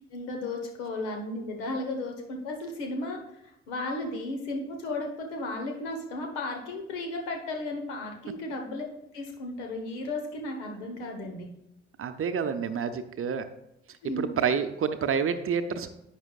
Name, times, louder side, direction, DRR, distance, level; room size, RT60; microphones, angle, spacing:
voice 1, 0.1-3.2 3.4-8.8 9.1-11.5 14.0-14.3, left 2 dB, 70° left, 2 dB, 1.5 m, -34 dB
voice 2, 12.0-13.5 14.2-15.9, right 6 dB, 35° right, 9 dB, 0.8 m, -28 dB
11.0 x 8.9 x 2.4 m, 0.84 s
figure-of-eight pair, 45°, 36 cm